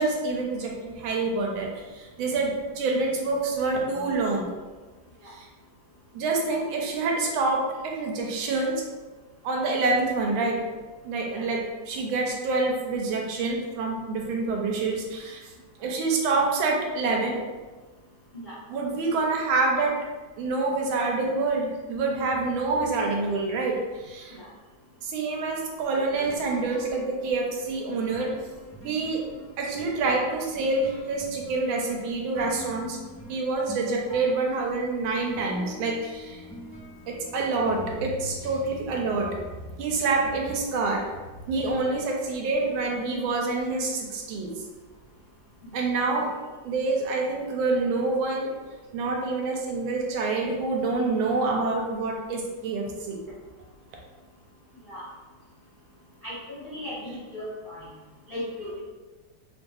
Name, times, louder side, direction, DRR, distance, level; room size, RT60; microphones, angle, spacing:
voice 1, 0.0-4.5 5.2-5.5 6.1-8.8 9.4-10.7 11.0-15.4 15.8-17.4 18.7-19.9 20.4-24.4 25.0-28.3 28.8-29.2 29.6-33.0 33.3-36.5 37.1-39.3 39.8-41.0 41.5-44.5 45.7-46.3 46.6-48.5 48.9-53.2, right 3 dB, 80° right, 0 dB, 1.4 m, -27 dB
sound 1, 25.9-45.7, left 1 dB, 10° left, 1.0 m, -46 dB
voice 2, 56.2-57.9 58.3-58.8, left 1 dB, 55° left, -11 dB, 0.5 m, -37 dB
3.4 x 2.6 x 2.3 m, 1.3 s
omnidirectional pair, 2.2 m